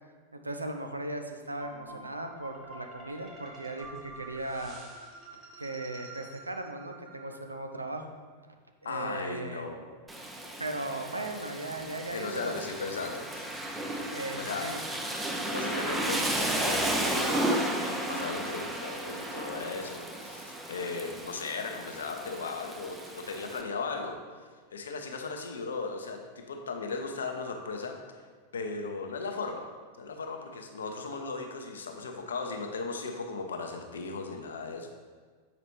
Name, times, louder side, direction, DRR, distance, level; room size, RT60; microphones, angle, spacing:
voice 1, 0.3-4.8 5.6-8.1 8.8-9.7 10.6-12.7 14.1-14.8, right 2 dB, 80° right, 5 dB, 0.5 m, -37 dB
sound 1, 1.6-7.7, right 2 dB, 30° right, 1.2 m, -48 dB
voice 2, 1.7-2.0 8.8-9.9 12.1-13.5 14.4-14.7 15.5-17.4 17.8-24.2 24.7-28.0 28.5-29.7 30.0-34.9, left 4 dB, 65° left, 4 dB, 0.7 m, -37 dB
Rain, 10.1-23.6, right 1 dB, 10° right, 0.6 m, -33 dB
7.1 x 4.9 x 3.1 m, 1.5 s
figure-of-eight pair, 90°, 0 cm